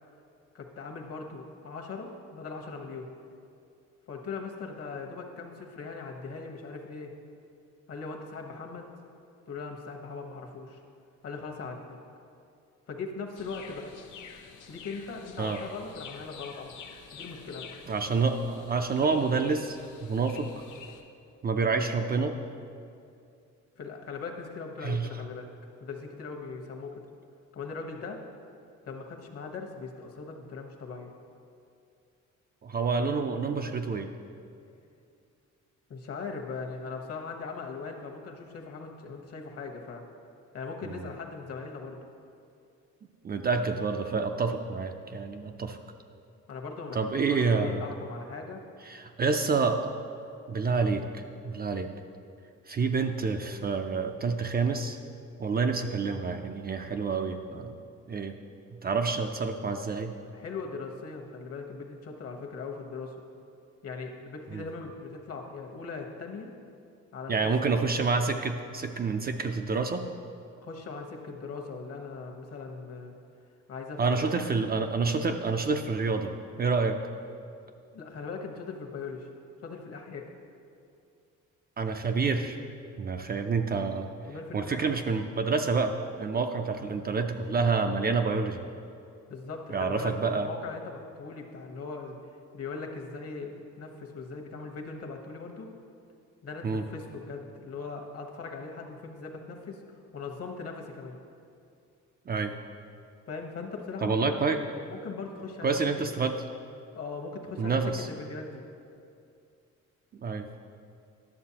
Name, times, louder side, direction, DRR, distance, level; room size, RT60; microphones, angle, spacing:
voice 1, 0.5-3.1 4.1-7.1 7.9-8.9 9.5-10.8 11.2-12.0 12.9-13.9 14.7-16.7 17.1-17.7 23.7-25.5 25.8-27.0 27.5-28.2 28.9-31.1 35.9-40.0 40.5-42.0 46.5-48.6 60.3-63.2 63.8-66.5 67.1-67.5 70.6-73.1 73.7-74.5 77.9-79.3 79.6-80.3 84.3-85.2 89.3-92.2 92.5-95.7 96.4-99.8 100.1-101.2 103.3-104.3 104.9-105.7 106.9-108.6, left 4 dB, 50° left, 2 dB, 1.0 m, -39 dB
sound 1, 13.3-21.0, left 6 dB, 85° left, 0.7 m, -48 dB
voice 2, 17.9-20.5 21.4-22.3 24.8-25.1 32.6-34.1 40.8-41.0 43.2-45.8 46.9-47.8 48.9-49.9 50.5-51.9 52.7-55.0 55.4-57.7 58.1-58.3 58.8-60.1 64.5-64.6 67.3-70.0 74.0-76.3 76.6-77.0 81.8-82.6 83.0-84.1 84.5-88.6 89.7-90.5 96.6-96.8 102.3-102.5 104.0-104.6 105.6-106.3 107.6-108.1 110.2-110.5, right 4 dB, 30° right, 5 dB, 0.4 m, -28 dB
11.0 x 6.6 x 2.8 m, 2.5 s
cardioid pair, 90°, 30 cm